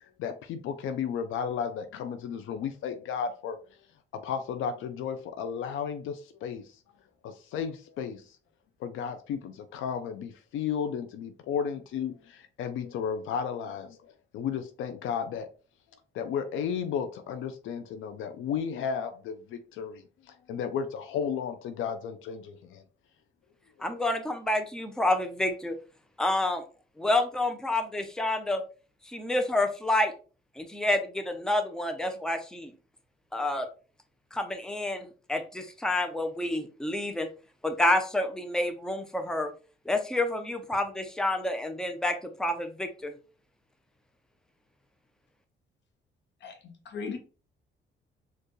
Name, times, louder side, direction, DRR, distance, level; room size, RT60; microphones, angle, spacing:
voice 1, 0.0-3.6 4.1-6.6 7.2-8.4 8.8-15.5 16.1-22.8 23.8-23.9, left 7 dB, 80° left, 0.5 m, -34 dB
voice 2, 23.8-25.7 26.2-26.6 27.0-28.6 29.1-30.1 30.6-32.7 33.3-33.7 34.3-37.3 37.6-39.5 39.9-43.1, left 1 dB, 5° left, 0.6 m, -28 dB
voice 3, 46.4-47.2, left 5 dB, 65° left, 0.9 m, -38 dB
4.4 x 2.4 x 3.1 m
cardioid pair, 90°, 20 cm